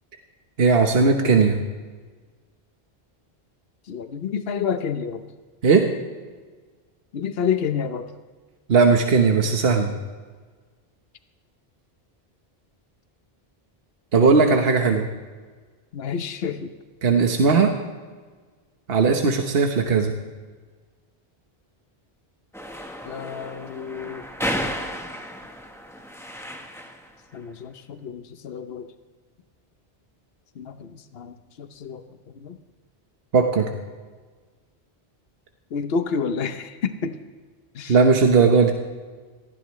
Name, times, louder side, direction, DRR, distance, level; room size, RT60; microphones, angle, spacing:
voice 1, 0.6-1.6 5.6-5.8 8.7-9.9 14.1-15.1 17.0-17.7 18.9-20.1 33.3-33.7 37.9-38.7, right 4 dB, 70° right, 3 dB, 1.4 m, -18 dB
voice 2, 3.9-5.3 7.1-8.1 15.9-16.7 23.0-24.3 27.3-28.9 30.5-32.0 32.3-32.6 35.7-37.2 37.7-38.0, left 6 dB, 70° left, 9 dB, 1.1 m, -29 dB
sound 1, 22.5-27.1, equal, 5° left, 1.1 m, -33 dB
19.5 x 15.0 x 3.2 m, 1.4 s
omnidirectional pair, 1.1 m